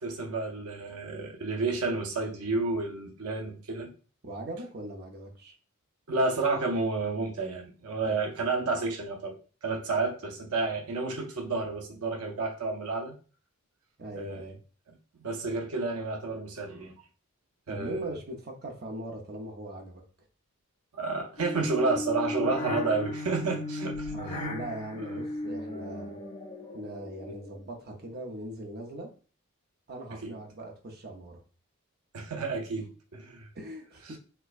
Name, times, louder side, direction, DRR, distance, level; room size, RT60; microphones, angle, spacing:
voice 1, 0.0-3.9 6.1-9.3 9.6-13.1 14.1-14.5 14.9-15.0 15.2-16.9 17.7-18.2 20.9-24.5 25.1-25.2 30.2-30.3 32.1-33.5, right 3 dB, 90° right, 3 dB, 0.7 m, -31 dB
voice 2, 4.2-5.5 8.0-8.2 14.0-14.6 17.7-20.0 24.1-26.2 26.7-29.1 29.9-31.4 33.5-34.2, right 1 dB, 45° right, 2 dB, 0.7 m, -40 dB
sound 1, 21.4-27.8, left 1 dB, 35° left, 0.6 m, -36 dB
4.4 x 2.2 x 2.5 m, 0.37 s
head